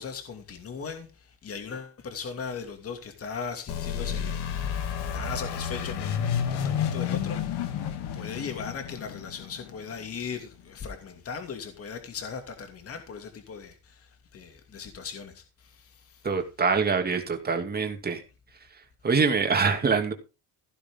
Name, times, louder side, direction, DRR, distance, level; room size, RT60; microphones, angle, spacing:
voice 1, 0.0-7.8 8.1-16.3, left 6 dB, 35° left, 2.6 m, -39 dB
sound 1, 3.7-10.3, left 8 dB, 75° left, 2.8 m, -31 dB
voice 2, 16.2-18.2 19.0-20.1, right 5 dB, 25° right, 2.7 m, -24 dB
16.0 x 10.0 x 3.8 m
cardioid pair, 140°, 39 cm